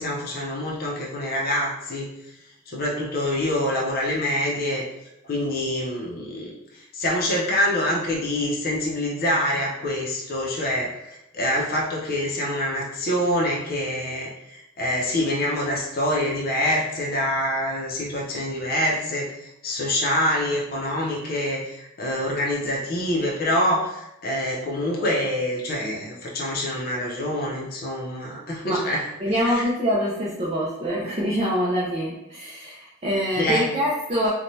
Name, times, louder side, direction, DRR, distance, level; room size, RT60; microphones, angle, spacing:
voice 1, 0.0-2.1 2.7-4.8 5.3-19.3 19.6-29.1 29.4-29.7 33.3-33.7, left 1 dB, 45° left, -3 dB, 0.6 m, -26 dB
voice 2, 29.2-34.3, equal, 30° right, -5 dB, 0.4 m, -25 dB
2.7 x 2.2 x 3.0 m, 0.89 s
head